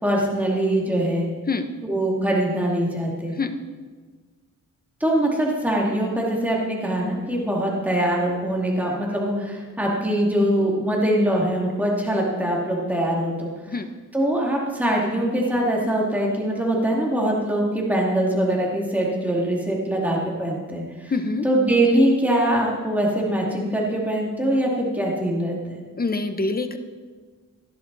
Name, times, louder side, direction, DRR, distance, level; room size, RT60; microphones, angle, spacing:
voice 1, 0.0-1.3 1.8-3.3 5.0-13.5 14.1-21.1 21.4-25.8, right 1 dB, 5° right, -3 dB, 2.5 m, -23 dB
voice 2, 21.1-21.4 26.0-26.8, left 3 dB, 30° left, 8 dB, 1.0 m, -25 dB
17.0 x 11.0 x 4.1 m, 1.4 s
wide cardioid pair, 110°, 32 cm